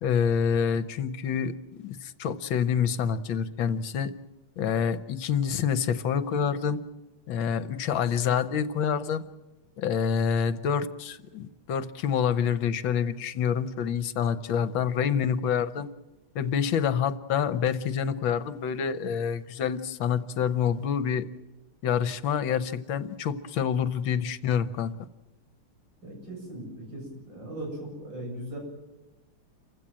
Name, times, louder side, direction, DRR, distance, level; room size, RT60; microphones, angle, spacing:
voice 1, 0.0-4.1 4.6-6.8 7.3-9.2 9.8-15.9 16.3-21.2 21.8-24.9, left 7 dB, 70° left, 13 dB, 1.7 m, -27 dB
voice 2, 26.0-28.6, right 1 dB, 60° right, 0 dB, 8.9 m, -38 dB
29.0 x 16.0 x 7.6 m, 1.1 s
omnidirectional pair, 2.3 m